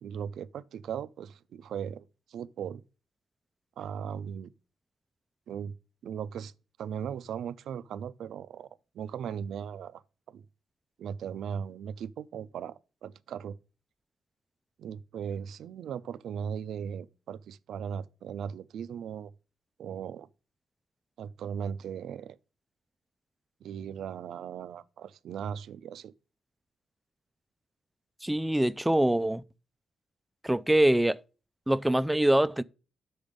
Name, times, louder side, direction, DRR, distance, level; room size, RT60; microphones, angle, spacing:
voice 1, 0.0-2.8 3.8-4.5 5.5-5.7 6.0-6.5 6.8-8.7 8.9-10.0 10.3-10.4 11.0-13.6 14.8-19.3 19.8-20.3 21.2-22.4 23.6-26.1, right 8 dB, 75° right, 0.4 m, -38 dB
voice 2, 28.2-29.4 30.4-31.2 31.7-32.6, right 1 dB, 5° right, 0.4 m, -24 dB
6.3 x 5.3 x 5.0 m
cardioid pair, 75°, 0 cm